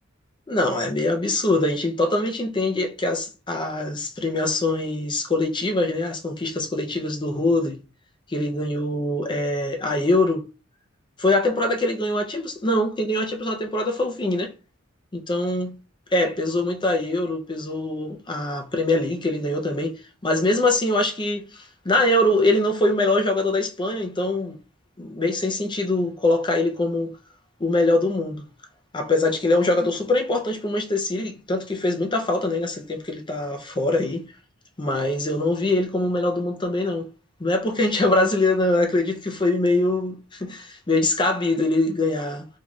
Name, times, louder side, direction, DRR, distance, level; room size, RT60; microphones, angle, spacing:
voice 1, 0.5-7.8 8.3-10.5 11.2-14.5 15.1-15.7 16.1-24.6 25.0-27.2 27.6-28.4 28.9-34.3 34.8-37.1 37.4-42.5, left 2 dB, 25° left, 0.6 m, -23 dB
3.6 x 2.4 x 3.1 m
head